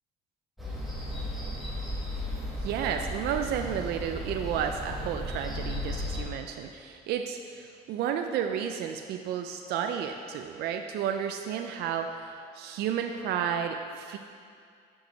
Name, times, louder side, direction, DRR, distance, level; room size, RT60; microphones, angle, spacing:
sound 1, 0.6-6.2, left 1 dB, ahead, 1.3 m, -35 dB
voice 1, 2.6-14.2, right 8 dB, 75° right, 5 dB, 0.4 m, -32 dB
6.1 x 4.8 x 5.2 m, 2.3 s
cardioid pair, 110°, 17 cm